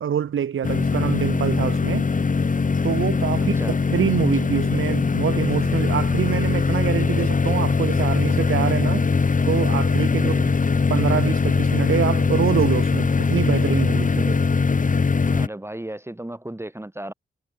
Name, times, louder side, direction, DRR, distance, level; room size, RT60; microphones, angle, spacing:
voice 1, 0.0-2.1 2.8-3.5 3.9-9.1 9.5-10.3 10.9-14.4, right 8 dB, 70° right, 1.1 m, -25 dB
sound 1, 0.6-15.5, left 4 dB, 40° left, 1.4 m, -21 dB
voice 2, 10.2-10.6 15.3-17.1, right 1 dB, 10° right, 2.4 m, -34 dB
cardioid pair, 55°, 21 cm